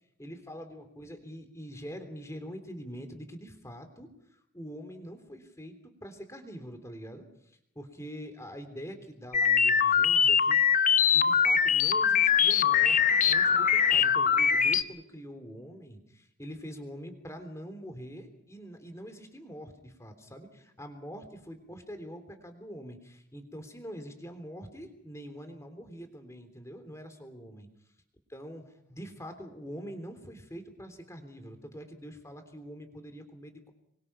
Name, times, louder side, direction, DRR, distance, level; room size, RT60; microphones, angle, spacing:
voice 1, 0.2-4.1 4.5-7.2 7.7-10.6 11.1-27.7 28.3-33.7, equal, 15° left, 6 dB, 3.4 m, -44 dB
sound 1, 9.3-14.8, left 7 dB, 35° left, 0.8 m, -23 dB
26.0 x 23.5 x 5.8 m, 0.77 s
head